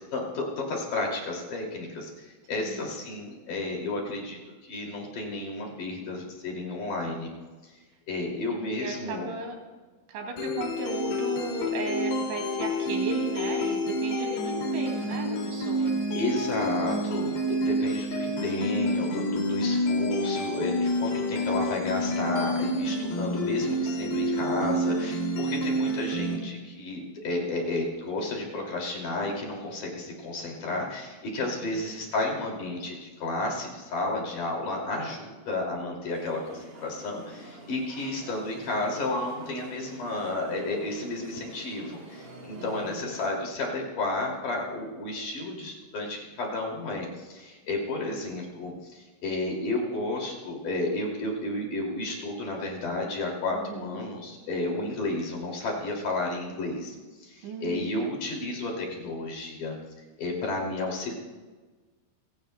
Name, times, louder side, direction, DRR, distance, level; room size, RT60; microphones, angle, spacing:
voice 1, 0.0-7.3 7.6-7.7 8.1-9.3 10.4-10.5 16.1-59.7 60.2-61.1, left 2 dB, 50° left, -1 dB, 3.7 m, -32 dB
voice 2, 2.5-2.8 8.5-9.6 10.1-15.9 31.4-31.9 38.2-38.4 42.6-43.1 53.5-54.0 57.4-58.0 58.3-58.4, right 3 dB, 85° right, 2 dB, 4.7 m, -36 dB
sound 1, 10.4-26.4, equal, 70° left, 4.5 m, -28 dB
sound 2, 36.1-43.3, right 1 dB, 30° right, 2.1 m, -47 dB
29.5 x 16.5 x 2.2 m, 1.3 s
omnidirectional pair, 5.1 m